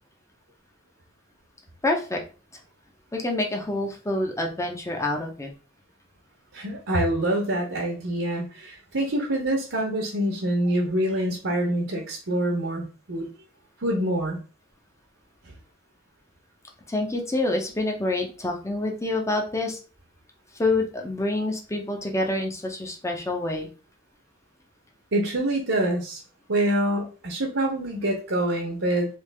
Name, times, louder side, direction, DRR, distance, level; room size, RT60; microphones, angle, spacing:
voice 1, 1.8-2.2 3.1-5.5 16.9-19.8 20.5-23.7, left 2 dB, 15° left, 2 dB, 0.7 m, -27 dB
voice 2, 6.5-13.3 13.8-14.4 25.1-26.2 26.5-29.1, right 1 dB, 75° right, -1 dB, 1.0 m, -26 dB
3.4 x 3.2 x 3.3 m, 0.35 s
head